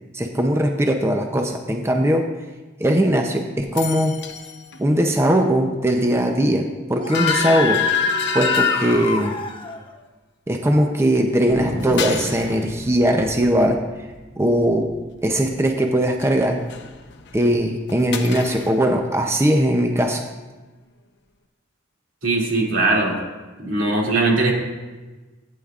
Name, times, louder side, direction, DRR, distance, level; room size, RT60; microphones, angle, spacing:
voice 1, 0.1-2.3 2.8-4.2 4.8-7.8 8.3-9.4 10.5-13.8 14.4-14.9 15.2-16.6 17.3-20.2, right 1 dB, 15° right, 3 dB, 0.6 m, -20 dB
sound 1, 3.7-4.8 5.1-5.2 7.1-9.6 11.8-12.7 16.2-16.3 16.6-17.5 17.9-18.9, left 6 dB, 60° left, 0.7 m, -30 dB
Screaming, 7.0-9.8, left 5 dB, 25° left, 0.8 m, -24 dB
Thunder, 11.5-16.3 16.6-16.7 16.9-17.4 17.9-19.1, right 1 dB, 60° right, 1.7 m, -34 dB
voice 2, 22.2-23.2 23.6-24.5, right 2 dB, 85° right, -3 dB, 2.6 m, -20 dB
15.0 x 9.4 x 2.4 m, 1.2 s
head